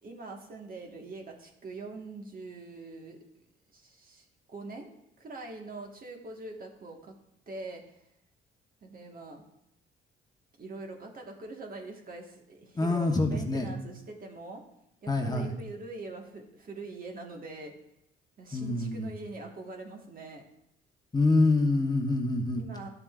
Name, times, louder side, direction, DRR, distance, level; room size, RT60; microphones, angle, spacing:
voice 1, 0.0-3.2 3.7-4.9 5.2-7.1 7.5-8.0 8.8-9.4 10.6-14.6 15.0-17.7 18.4-20.5 22.6-22.9, right 3 dB, 45° right, 2 dB, 1.5 m, -43 dB
voice 2, 12.7-13.7 15.1-15.5 18.5-19.1 21.1-22.6, left 2 dB, 20° left, 2 dB, 1.1 m, -26 dB
12.0 x 7.4 x 2.5 m, 0.79 s
cardioid pair, 90°, 20 cm